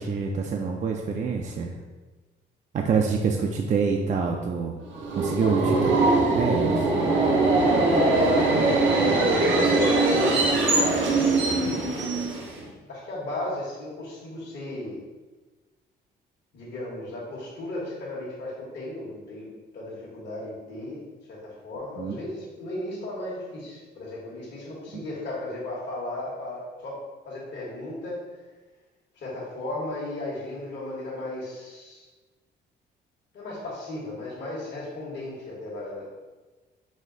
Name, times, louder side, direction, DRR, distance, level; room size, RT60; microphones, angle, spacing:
voice 1, 0.0-1.8 2.7-4.8 5.1-5.8 6.3-6.9 22.0-22.1, right 5 dB, 40° right, 1 dB, 0.4 m, -26 dB
Subway metro underground, 4.9-12.7, right 2 dB, 70° right, 0.7 m, -22 dB
voice 2, 5.4-5.9 7.6-8.9 9.7-10.7 11.3-11.7 12.9-15.0 16.5-19.5 19.7-21.0 21.3-26.9 27.2-28.2 29.1-32.0 33.3-36.1, left 1 dB, 65° left, -7 dB, 1.3 m, -35 dB
4.1 x 2.3 x 3.8 m, 1.2 s
cardioid pair, 90°, 20 cm